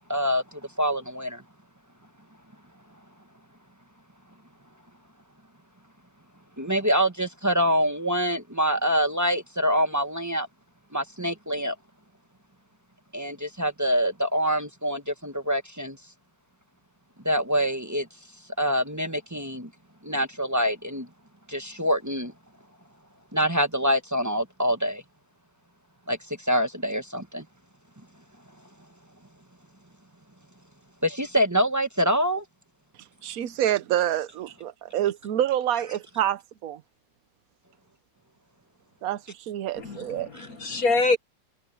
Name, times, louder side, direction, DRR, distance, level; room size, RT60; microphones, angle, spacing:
voice 1, 0.0-1.4 6.6-10.5 10.9-11.7 13.1-16.0 17.2-18.1 18.6-19.7 20.0-21.1 21.5-22.3 23.3-25.0 26.1-27.4 31.0-32.4 40.3-40.5, equal, 15° right, 0.8 m, -25 dB
voice 2, 33.2-36.8 39.0-40.3, right 11 dB, 60° right, 1.1 m, -27 dB
voice 3, 39.8-41.2, left 3 dB, 55° left, 2.0 m, -25 dB
omnidirectional pair, 1.9 m